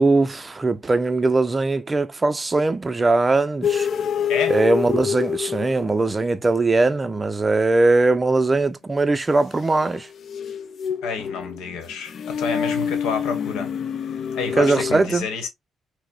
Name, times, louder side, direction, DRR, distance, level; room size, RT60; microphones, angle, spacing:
voice 1, 0.0-3.9 4.5-10.1 14.6-15.3, right 3 dB, 25° right, 0.4 m, -20 dB
sound 1, 3.6-6.3 9.7-14.9, left 7 dB, 60° left, 0.3 m, -26 dB
voice 2, 11.0-13.7 14.3-15.5, left 5 dB, 90° left, 1.0 m, -29 dB
4.8 x 2.0 x 2.2 m
cardioid pair, 90°, 0 cm